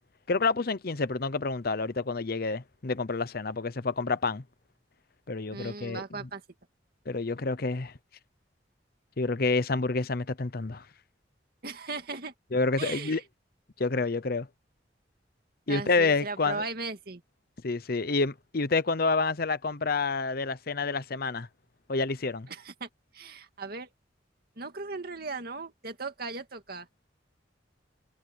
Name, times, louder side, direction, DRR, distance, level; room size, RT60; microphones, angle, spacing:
voice 1, 0.3-4.4 5.3-6.2 7.1-7.9 9.2-10.8 12.5-13.2 13.8-14.5 15.7-16.6 17.6-21.5 21.9-22.5, left 3 dB, 55° left, 0.8 m, -28 dB
voice 2, 5.5-6.4 11.6-12.3 12.8-13.2 15.7-17.2 22.5-23.9 24.6-26.9, right 3 dB, 55° right, 2.3 m, -37 dB
head